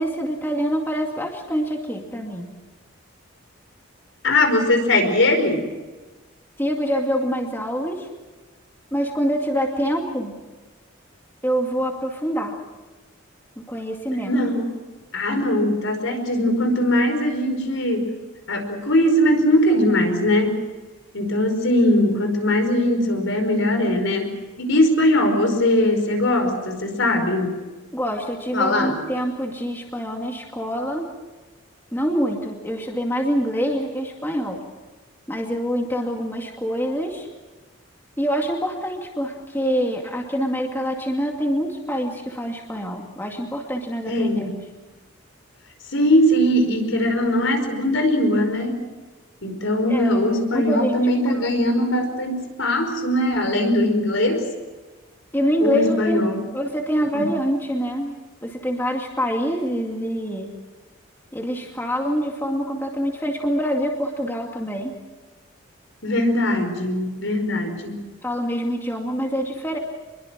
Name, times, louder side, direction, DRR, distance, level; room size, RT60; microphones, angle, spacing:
voice 1, 0.0-2.5 6.6-8.1 8.9-10.3 11.4-12.6 13.6-14.4 27.9-31.1 31.9-34.6 35.3-37.3 38.2-44.5 49.9-50.9 51.3-51.5 55.3-56.2 56.5-60.5 61.3-65.0 68.2-69.8, equal, 10° left, 1 dB, 2.3 m, -25 dB
voice 2, 4.2-5.6 14.2-14.7 15.1-18.1 18.5-20.6 21.1-24.3 24.6-27.6 28.5-28.9 44.1-44.5 45.9-48.8 49.4-54.4 55.6-56.4 57.1-57.3 66.0-68.0, left 1 dB, 75° left, 6 dB, 5.0 m, -20 dB
27.0 x 22.0 x 6.1 m, 1.2 s
head